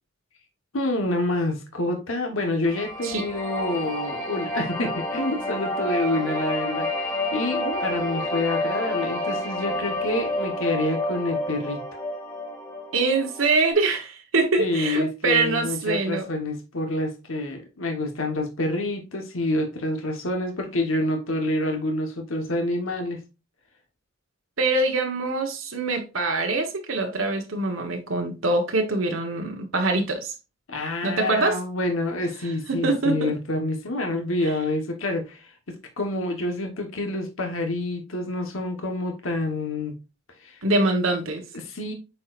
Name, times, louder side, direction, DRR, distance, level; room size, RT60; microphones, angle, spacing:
voice 1, 0.7-11.8 14.6-23.2 30.7-39.9 40.4-40.6 41.5-41.9, left 2 dB, 85° left, 1.3 m, -27 dB
sound 1, 2.7-13.7, left 1 dB, 20° left, 2.1 m, -29 dB
voice 2, 12.9-16.3 24.6-30.3 31.0-31.6 32.7-33.3 40.6-41.4, right 3 dB, 80° right, 1.2 m, -24 dB
8.4 x 4.6 x 2.5 m
head